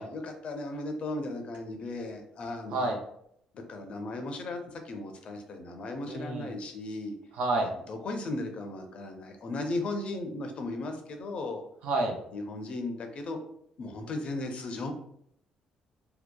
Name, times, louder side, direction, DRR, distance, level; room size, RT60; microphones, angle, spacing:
voice 1, 0.0-3.0 3.5-7.2 7.9-11.6 12.3-13.4 13.8-14.9, left 2 dB, 55° left, 4 dB, 0.5 m, -36 dB
voice 2, 6.0-6.5 7.3-7.7 11.8-12.2, right 2 dB, 75° right, 1 dB, 0.5 m, -29 dB
2.7 x 2.1 x 2.2 m, 0.70 s
supercardioid pair, 70°, 2 cm